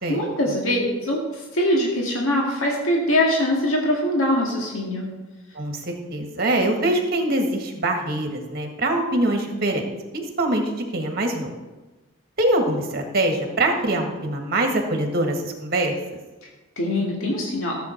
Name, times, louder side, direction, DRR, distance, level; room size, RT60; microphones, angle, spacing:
voice 1, 0.1-1.2 1.5-5.1 16.8-17.8, left 1 dB, 80° left, -1 dB, 2.0 m, -22 dB
voice 2, 5.6-9.8 10.1-11.5 12.4-15.9, right 1 dB, 50° right, 3 dB, 1.7 m, -23 dB
14.0 x 7.5 x 4.5 m, 1.2 s
head